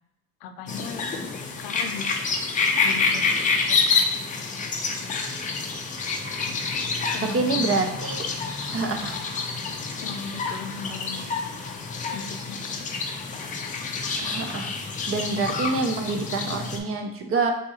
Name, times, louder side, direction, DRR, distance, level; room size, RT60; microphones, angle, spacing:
voice 1, 0.4-2.3 2.8-3.5 3.9-4.2 7.1-7.7 10.0-11.3 12.1-12.9, left 5 dB, 80° left, 8 dB, 0.6 m, -38 dB
sound 1, 0.7-16.8, left 4 dB, 20° left, 0.4 m, -28 dB
voice 2, 7.3-8.2 8.7-9.1 14.2-14.7 15.1-17.5, right 3 dB, 35° right, 4 dB, 0.6 m, -26 dB
3.6 x 2.8 x 4.2 m, 0.88 s
cardioid pair, 150°, 36 cm